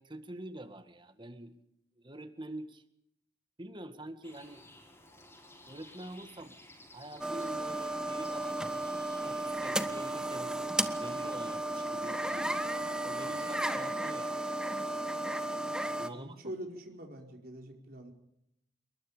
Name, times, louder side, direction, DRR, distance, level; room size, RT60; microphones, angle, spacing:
voice 1, 0.0-1.5 2.0-2.8 3.6-4.6 5.7-6.6 6.9-8.6 9.2-10.7 11.0-12.7 13.0-14.5 15.9-16.5, right 1 dB, 25° right, 10 dB, 1.9 m, -46 dB
sound 1, 4.2-13.5, left 1 dB, 15° left, 7.1 m, -56 dB
sound 2, 7.2-16.1, right 1 dB, 5° right, 1.3 m, -34 dB
voice 2, 16.1-18.1, right 1 dB, 55° right, 2 dB, 5.0 m, -44 dB
28.5 x 22.5 x 5.1 m, 0.78 s
head